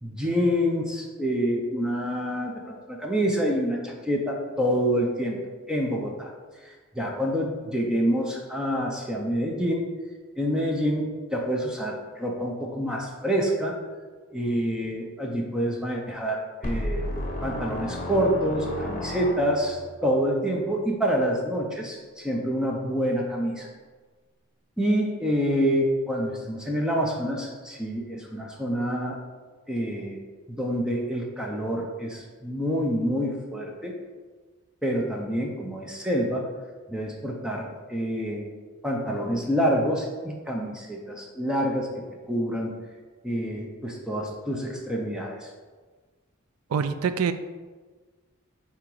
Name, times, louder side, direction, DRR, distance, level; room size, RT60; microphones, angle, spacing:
voice 1, 0.0-5.4 5.7-6.3 6.6-9.9 10.4-13.8 14.3-17.1 17.4-23.7 24.8-29.2 29.7-30.2 30.5-33.9 34.8-36.4 36.9-38.5 38.8-42.7 43.2-45.5, equal, 5° right, -1 dB, 0.6 m, -27 dB
sound 1, 16.6-19.9, left 1 dB, 40° left, 1.0 m, -32 dB
voice 2, 46.7-47.3, right 6 dB, 75° right, 11 dB, 0.3 m, -25 dB
7.3 x 2.9 x 4.7 m, 1.4 s
head